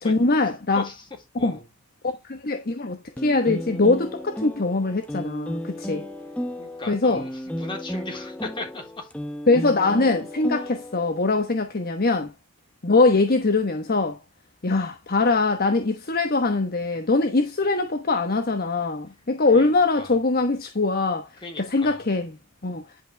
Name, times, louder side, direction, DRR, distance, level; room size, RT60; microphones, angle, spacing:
voice 1, 0.0-0.9 1.3-1.6 2.0-6.1 6.9-7.2 9.5-12.3 12.8-14.2 14.6-21.3 21.6-22.8, left 3 dB, 45° left, 1.1 m, -22 dB
sound 1, 3.2-11.3, left 1 dB, 5° left, 0.9 m, -34 dB
voice 2, 6.6-9.1 19.5-19.7 20.0-20.1 21.4-22.0, left 2 dB, 25° left, 4.0 m, -37 dB
11.0 x 5.6 x 3.3 m
head